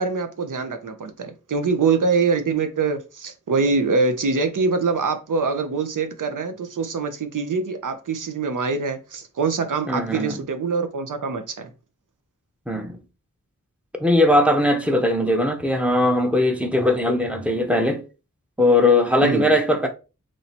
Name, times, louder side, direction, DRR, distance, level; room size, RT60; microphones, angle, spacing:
voice 1, 0.0-11.7 19.2-19.6, right 4 dB, 75° right, 0.7 m, -24 dB
voice 2, 9.9-10.4 12.7-13.0 14.0-18.0 18.6-19.9, left 1 dB, 5° right, 0.7 m, -19 dB
3.2 x 2.7 x 4.1 m
wide cardioid pair, 85°, 32 cm